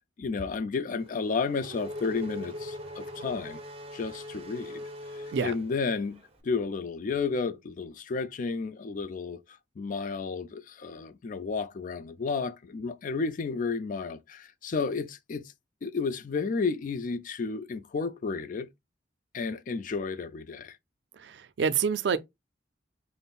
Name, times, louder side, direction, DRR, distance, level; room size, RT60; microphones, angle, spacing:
voice 1, 0.2-3.6 3.9-4.8 5.4-9.4 9.8-15.5 15.8-18.7 19.3-20.8, left 4 dB, 45° left, 0.4 m, -32 dB
Race car auto racing / Accelerating revving vroom, 1.0-6.3, left 1 dB, 35° right, 0.7 m, -41 dB
voice 2, 21.2-22.2, right 6 dB, 65° right, 0.4 m, -27 dB
5.3 x 2.0 x 2.3 m
head